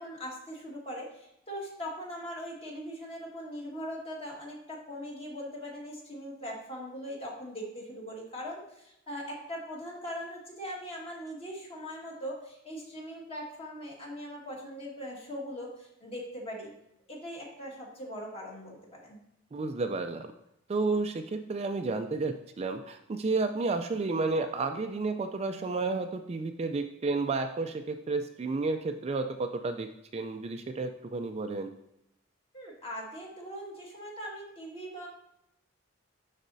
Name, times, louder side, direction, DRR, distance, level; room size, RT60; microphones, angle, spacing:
voice 1, 0.0-16.7 17.1-19.2 32.5-35.1, equal, 30° left, -3 dB, 1.7 m, -40 dB
voice 2, 19.5-20.3 20.7-31.7, right 3 dB, 30° right, 6 dB, 0.4 m, -31 dB
11.5 x 4.1 x 2.6 m, 0.82 s
head